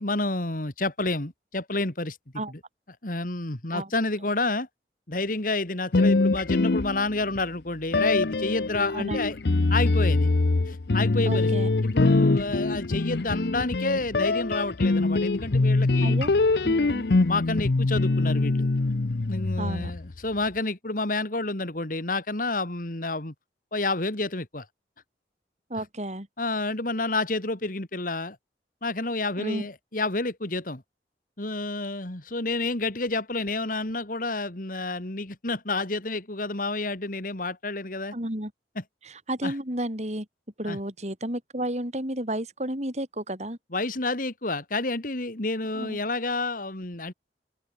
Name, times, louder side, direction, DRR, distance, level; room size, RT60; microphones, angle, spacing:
voice 1, 0.0-2.2 2.5-2.6 3.0-4.7 5.1-9.4 9.7-10.3 10.7-11.5 11.8-16.2 17.3-18.7 19.3-23.3 23.7-24.7 26.4-28.4 28.8-30.8 31.4-38.2 38.8-38.9 39.4-39.5 40.6-40.8 43.7-47.1, left 2 dB, 50° left, 2.5 m, -29 dB
sound 1, 5.9-7.4 7.9-20.1, left 3 dB, 65° left, 0.7 m, -23 dB
voice 2, 11.3-11.7 16.0-16.3 16.6-17.0 19.6-19.9 25.7-26.3 29.4-29.7 38.1-38.5 39.0-40.3 40.6-43.6 45.7-46.0, right 1 dB, 40° right, 6.2 m, -32 dB
open air
head